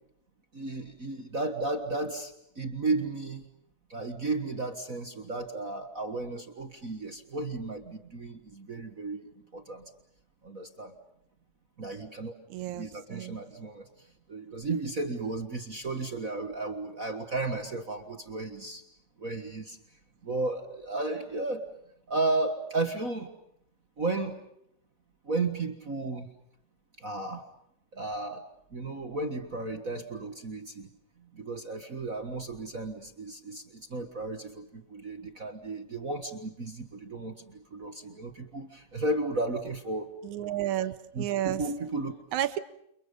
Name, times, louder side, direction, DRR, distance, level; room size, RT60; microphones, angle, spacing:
voice 1, 0.5-3.5 3.9-9.2 9.5-9.8 10.4-10.9 11.8-12.3 12.8-13.9 14.3-18.8 19.2-19.8 20.2-21.7 22.1-23.3 24.0-24.4 25.2-26.3 27.0-27.4 27.9-28.4 28.7-30.9 31.3-40.1 41.1-42.1, right 2 dB, 35° right, 7 dB, 1.4 m, -34 dB
voice 2, 12.5-13.4 40.2-41.6 42.3-42.6, right 12 dB, 70° right, 12 dB, 2.5 m, -31 dB
29.5 x 29.0 x 5.4 m, 0.74 s
omnidirectional pair, 3.6 m